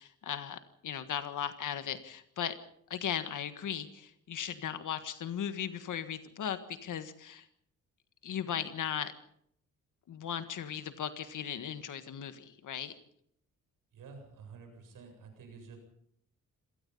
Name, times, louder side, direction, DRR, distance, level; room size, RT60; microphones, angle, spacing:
voice 1, 0.0-2.5 2.9-7.5 8.2-9.1 10.1-12.9, left 9 dB, 70° left, 10 dB, 1.7 m, -37 dB
voice 2, 13.9-15.8, right 5 dB, 85° right, 5 dB, 7.9 m, -50 dB
27.0 x 18.5 x 5.5 m, 0.68 s
cardioid pair, 120°, 32 cm